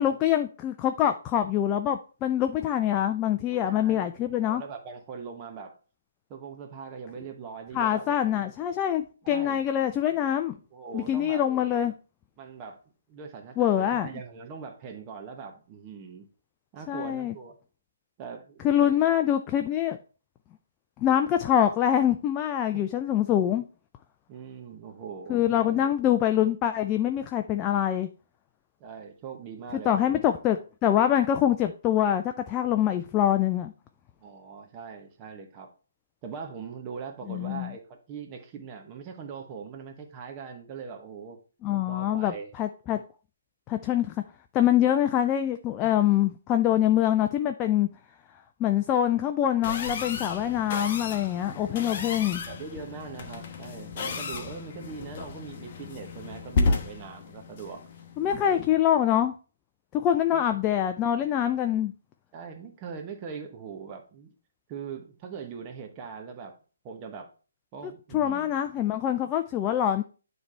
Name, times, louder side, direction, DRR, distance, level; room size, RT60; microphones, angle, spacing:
voice 1, 0.0-4.6 7.7-10.5 10.9-11.9 13.6-14.1 16.9-17.3 18.6-20.0 21.0-23.6 25.3-28.1 29.9-33.7 37.3-37.7 41.6-43.0 43.7-44.1 44.5-47.9 48.6-52.4 58.2-59.3 59.9-61.9 68.1-70.0, left 10 dB, 20° left, 0.4 m, -25 dB
voice 2, 3.5-5.7 6.3-8.1 9.2-9.6 10.7-11.4 12.4-12.8 13.1-16.3 16.7-17.6 18.2-18.9 24.3-25.8 28.8-30.2 34.2-35.7 36.2-41.4 41.9-42.5 45.8-46.1 51.4-52.2 52.4-57.8 58.4-58.6 60.3-60.4 62.3-64.3 64.7-66.6 66.8-67.3 67.7-68.5, right 6 dB, 25° right, 1.1 m, -41 dB
sound 1, 49.6-58.8, left 3 dB, 40° left, 1.0 m, -33 dB
9.5 x 3.4 x 4.3 m
figure-of-eight pair, 135°, 0 cm